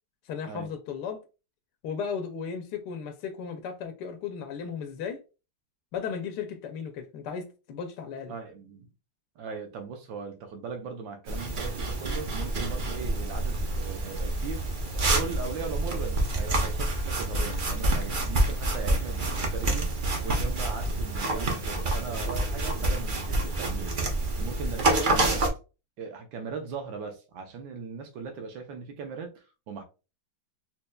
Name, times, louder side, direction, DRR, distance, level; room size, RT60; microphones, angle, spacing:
voice 1, 0.3-1.2 1.8-5.2 5.9-8.3, left 6 dB, 75° left, 1.1 m, -35 dB
voice 2, 8.3-8.9 9.4-14.6 14.9-24.0 24.4-25.4 26.0-29.8, right 5 dB, 85° right, 1.4 m, -38 dB
sound 1, 11.3-25.5, right 2 dB, 60° right, 0.5 m, -28 dB
4.4 x 3.0 x 2.2 m
omnidirectional pair, 2.0 m